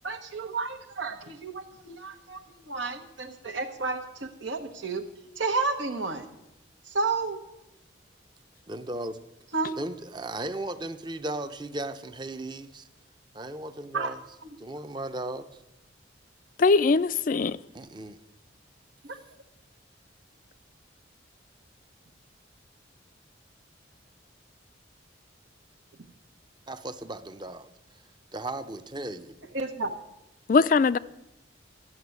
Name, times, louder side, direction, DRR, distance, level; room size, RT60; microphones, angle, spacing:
voice 1, 0.0-5.0 5.4-6.3 6.9-7.4 9.5-9.7 13.9-14.2 19.0-19.2 29.5-29.9, right 3 dB, 80° right, 1.2 m, -31 dB
voice 2, 8.7-9.2 9.8-12.9 13.3-14.2 14.6-15.6 17.7-18.2 26.7-27.7 28.3-29.3, right 2 dB, 25° right, 0.6 m, -36 dB
voice 3, 16.6-17.6 30.5-31.0, left 4 dB, 45° left, 0.4 m, -21 dB
12.5 x 6.8 x 9.5 m
head